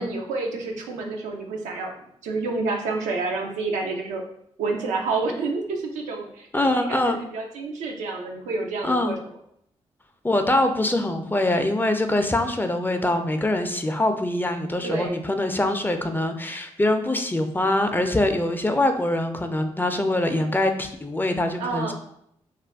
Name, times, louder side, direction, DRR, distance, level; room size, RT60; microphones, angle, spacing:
voice 1, 0.0-1.9 2.2-4.2 4.6-9.1 14.8-15.2 21.6-21.9, right 3 dB, 90° right, 1 dB, 0.4 m, -29 dB
voice 2, 6.5-7.2 8.8-9.2 10.2-21.9, left 1 dB, 15° left, 6 dB, 0.4 m, -23 dB
2.4 x 2.2 x 3.4 m, 0.72 s
supercardioid pair, 45°, 12 cm